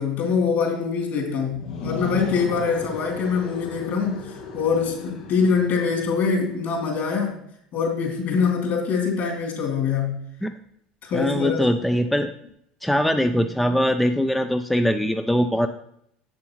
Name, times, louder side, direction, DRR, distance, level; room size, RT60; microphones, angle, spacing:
voice 1, 0.0-4.2 4.5-7.3 7.7-10.2 11.0-11.7, left 5 dB, 50° left, 0 dB, 2.8 m, -24 dB
sound 1, 1.5-6.5, left 5 dB, 80° left, 1.3 m, -36 dB
voice 2, 11.1-12.3 12.8-15.7, equal, ahead, 7 dB, 0.4 m, -22 dB
7.5 x 6.8 x 3.0 m, 0.72 s
hypercardioid pair, 75°, 4 cm